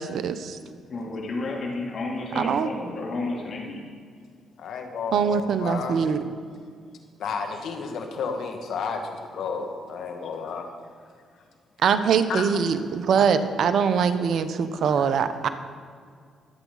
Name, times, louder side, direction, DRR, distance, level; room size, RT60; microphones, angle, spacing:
voice 1, 0.0-0.4 2.4-2.7 5.1-6.2 11.8-15.5, right 6 dB, 65° right, 10 dB, 1.0 m, -23 dB
voice 2, 0.6-3.8, left 2 dB, 55° left, -1 dB, 3.4 m, -32 dB
voice 3, 4.6-6.0 7.2-10.7 12.3-12.5 14.9-15.1, left 5 dB, 70° left, 4 dB, 1.9 m, -32 dB
22.5 x 8.5 x 4.1 m, 2.1 s
supercardioid pair, 60°, 0 cm